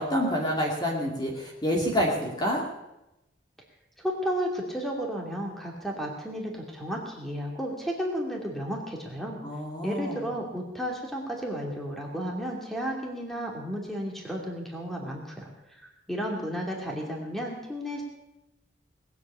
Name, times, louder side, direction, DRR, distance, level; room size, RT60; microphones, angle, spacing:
voice 1, 0.0-2.6 9.4-10.2, equal, 20° left, -1 dB, 2.4 m, -28 dB
voice 2, 4.0-9.4 9.8-18.0, equal, ahead, 0 dB, 2.6 m, -33 dB
20.0 x 8.3 x 8.5 m, 0.95 s
head